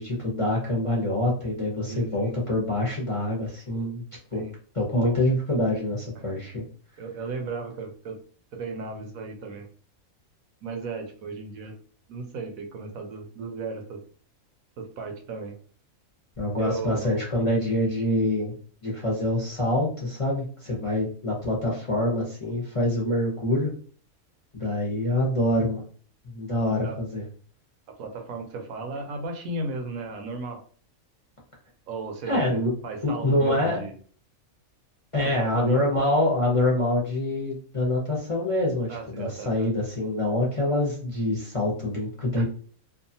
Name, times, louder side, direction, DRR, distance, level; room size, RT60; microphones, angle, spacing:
voice 1, 0.0-4.0 4.3-4.4 4.7-6.6 16.4-18.5 18.8-23.7 24.5-25.8 26.2-27.2 32.2-32.7 33.0-33.8 35.1-42.4, left 1 dB, 30° left, -4 dB, 0.6 m, -25 dB
voice 2, 1.9-2.3 4.3-4.5 7.0-8.2 8.5-9.7 10.6-11.8 12.1-14.0 14.8-15.6 16.6-17.1 26.8-27.0 28.0-30.6 31.9-32.4 32.8-33.9 35.4-35.8 38.9-39.7 42.4-42.5, right 3 dB, 75° right, 4 dB, 1.1 m, -35 dB
2.7 x 2.3 x 2.6 m, 0.43 s
omnidirectional pair, 1.5 m